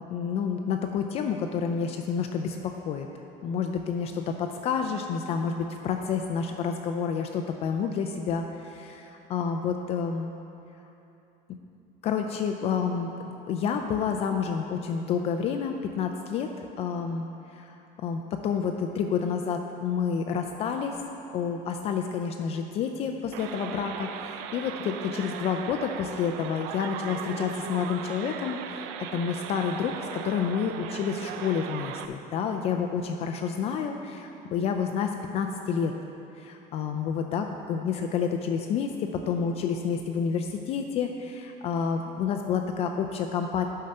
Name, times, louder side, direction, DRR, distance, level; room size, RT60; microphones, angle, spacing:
voice 1, 0.0-3.1 3.4-9.0 9.3-10.3 12.0-13.1 13.5-16.5 16.8-17.3 17.6-17.7 18.0-21.0 21.3-35.9 36.4-43.6, left 6 dB, 35° left, 4 dB, 0.4 m, -29 dB
sound 1, 23.3-32.1, right 8 dB, 85° right, 0.5 m, -38 dB
9.3 x 5.6 x 6.5 m, 2.8 s
cardioid pair, 175°, 17 cm